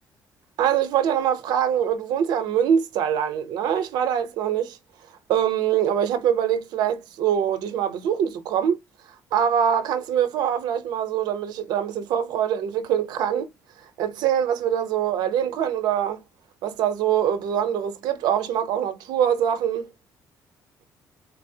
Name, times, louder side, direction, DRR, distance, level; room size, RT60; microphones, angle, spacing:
voice 1, 0.6-4.8 5.3-8.8 9.3-13.5 14.0-16.2 16.6-19.9, right 9 dB, 85° right, 0.7 m, -23 dB
4.0 x 2.0 x 2.7 m
cardioid pair, 125°, 7 cm